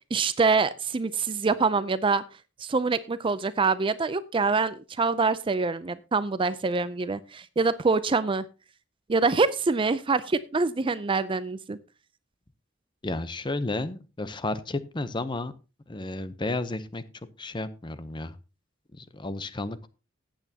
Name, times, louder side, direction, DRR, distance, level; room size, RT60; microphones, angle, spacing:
voice 1, 0.1-2.2 2.6-8.4 9.1-11.8, right 4 dB, 25° right, 15 dB, 0.4 m, -25 dB
voice 2, 13.0-15.5 15.9-17.0 17.4-18.4 18.9-19.9, left 2 dB, 25° left, 13 dB, 0.7 m, -32 dB
14.0 x 9.1 x 2.8 m, 0.30 s
head